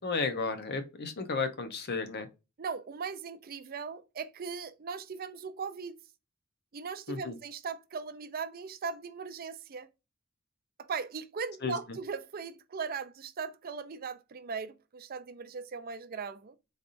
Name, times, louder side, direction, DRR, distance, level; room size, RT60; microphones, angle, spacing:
voice 1, 0.0-2.3 7.1-7.4 11.6-11.8, left 4 dB, 50° left, 0.8 m, -33 dB
voice 2, 2.6-6.0 6.7-9.9 10.8-16.6, right 5 dB, 45° right, 0.5 m, -39 dB
4.1 x 3.3 x 2.5 m
head